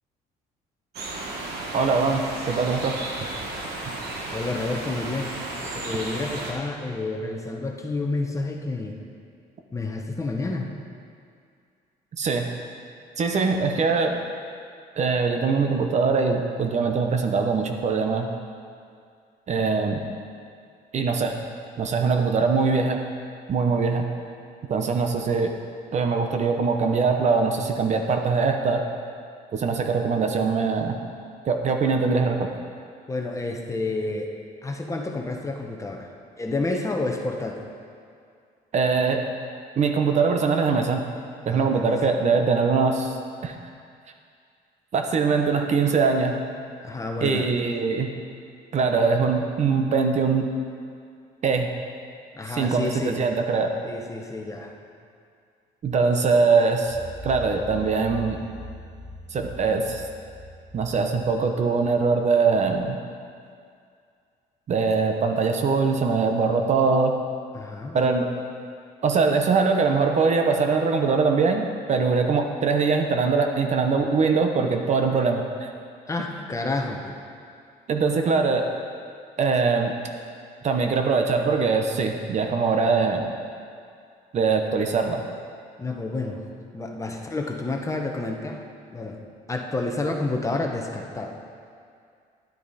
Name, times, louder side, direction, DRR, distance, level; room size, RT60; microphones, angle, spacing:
sound 1, 0.9-6.5, right 2 dB, 75° right, 1.7 m, -33 dB
voice 1, 1.7-3.0 12.2-12.5 13.2-14.2 15.0-18.3 19.5-20.0 20.9-21.3 21.8-23.0 23.5-24.0 24.7-25.5 25.9-28.8 29.5-30.9 31.5-32.5 38.7-39.2 39.8-41.0 41.5-43.2 43.4-43.6 44.9-46.3 47.2-48.1 48.7-50.6 51.4-51.7 52.5-53.7 55.8-57.0 57.2-58.4 59.3-60.1 60.7-63.0 64.7-67.2 67.9-68.3 69.0-75.7 77.9-78.7 79.4-79.9 80.6-83.2 84.3-85.2, right 4 dB, 45° right, 4 dB, 0.9 m, -22 dB
voice 2, 4.3-5.4 5.8-9.0 9.7-10.7 33.1-34.3 34.6-36.1 36.4-37.6 41.5-42.0 46.8-47.5 52.3-53.2 53.8-54.7 67.5-68.0 76.1-77.0 85.8-86.4 86.7-88.6 88.9-89.2 89.5-91.4, left 2 dB, 20° left, 2 dB, 1.0 m, -29 dB
sound 2, 56.9-61.8, left 2 dB, 25° right, 1.8 m, -41 dB
10.5 x 9.2 x 4.2 m, 2.3 s
cardioid pair, 110°, 17 cm